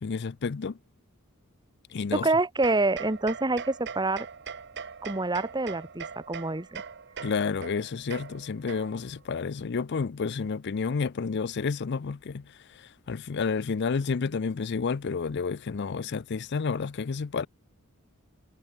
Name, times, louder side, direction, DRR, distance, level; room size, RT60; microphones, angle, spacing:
voice 1, 0.0-0.8 1.9-2.3 7.2-17.5, left 5 dB, 50° left, 0.5 m, -30 dB
voice 2, 2.1-4.3 5.0-6.8, right 2 dB, 20° right, 1.2 m, -27 dB
sound 1, 2.6-9.2, right 6 dB, 50° right, 1.1 m, -41 dB
head